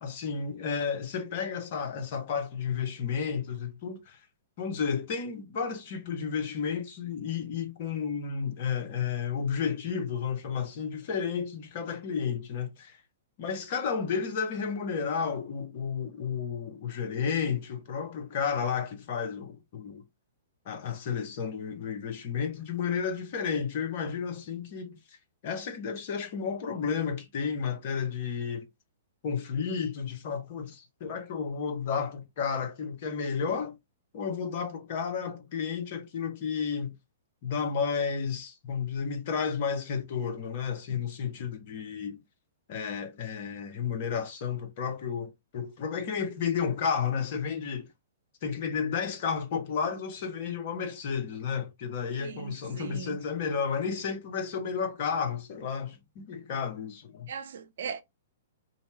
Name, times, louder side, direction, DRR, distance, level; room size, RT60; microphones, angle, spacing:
voice 1, 0.0-4.2 4.6-13.0 13.4-20.0 20.7-25.0 25.4-28.6 29.2-33.8 34.1-36.9 37.4-42.2 42.7-47.9 48.4-57.3, left 6 dB, 50° left, 0.8 m, -32 dB
voice 2, 52.2-53.2 57.3-58.0, right 7 dB, 60° right, 0.5 m, -39 dB
2.7 x 2.1 x 3.0 m
figure-of-eight pair, 110°, 0 cm